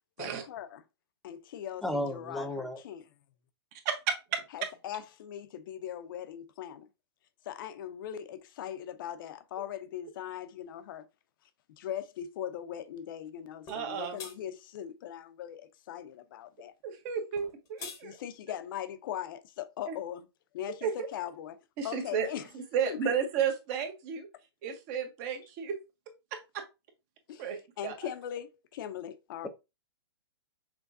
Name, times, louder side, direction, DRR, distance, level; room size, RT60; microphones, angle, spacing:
voice 1, 0.2-0.8 1.2-3.1 4.5-6.9 7.5-11.0 11.8-16.7 18.0-20.3 20.5-21.6 21.8-22.5 22.8-23.0 27.3-27.5 27.8-29.5, left 10 dB, 50° left, 0.6 m, -40 dB
voice 2, 1.8-2.8, left 1 dB, ahead, 0.4 m, -33 dB
voice 3, 3.8-4.4 13.7-14.2 16.8-18.2 19.9-20.0 20.8-21.1 21.8-22.3 22.5-24.3 24.6-25.8 26.3-26.6 27.4-27.6 27.8-27.9, right 7 dB, 35° right, 1.0 m, -32 dB
sound 1, 13.7-13.8 14.2-14.4 17.4-18.0, left 5 dB, 25° left, 0.9 m, -43 dB
5.8 x 2.2 x 2.6 m
hypercardioid pair, 150°, 14 cm